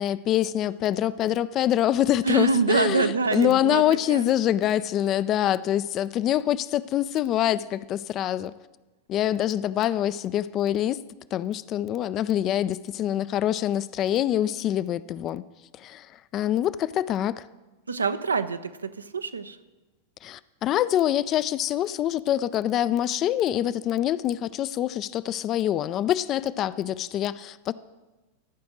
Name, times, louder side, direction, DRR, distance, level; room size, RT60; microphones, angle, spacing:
voice 1, 0.0-8.5 9.1-11.0 11.3-15.4 15.7-17.4 20.2-27.7, left 12 dB, 35° left, 17 dB, 0.3 m, -25 dB
voice 2, 2.2-4.3 17.9-19.6, right 4 dB, 75° right, 12 dB, 0.5 m, -26 dB
14.0 x 5.1 x 6.1 m, 1.2 s
figure-of-eight pair, 90°, 0 cm